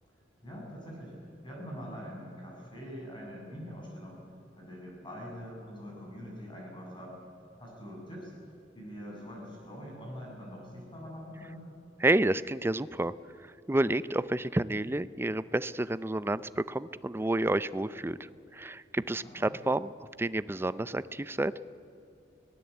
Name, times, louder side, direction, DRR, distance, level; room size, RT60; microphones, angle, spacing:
voice 1, 0.4-4.2 4.5-7.2 7.6-8.3 8.7-11.7 19.2-19.5, equal, 25° left, -2 dB, 7.6 m, -44 dB
voice 2, 12.0-13.1 13.7-18.2 18.5-19.9 20.2-21.5, right 1 dB, 10° right, 16 dB, 0.5 m, -29 dB
23.5 x 18.0 x 8.1 m, 2.5 s
head